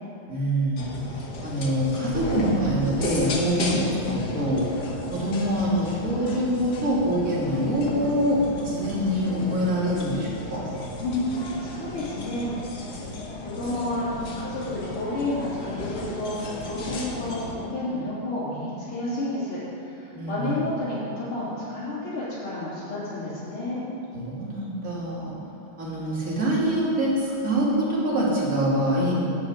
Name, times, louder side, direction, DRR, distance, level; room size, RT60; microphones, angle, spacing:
voice 1, 0.3-0.9 1.4-4.7 5.1-8.4 8.6-10.6 20.1-20.6 24.1-25.3 25.8-29.2, equal, 40° right, -7 dB, 3.3 m, -25 dB
sound 1, 0.8-17.6, left 2 dB, 55° left, 1.7 m, -34 dB
voice 2, 11.0-12.8 13.4-14.1 14.4-23.8, left 1 dB, 85° left, -13 dB, 4.1 m, -30 dB
10.5 x 6.5 x 8.9 m, 3.0 s
omnidirectional pair, 2.3 m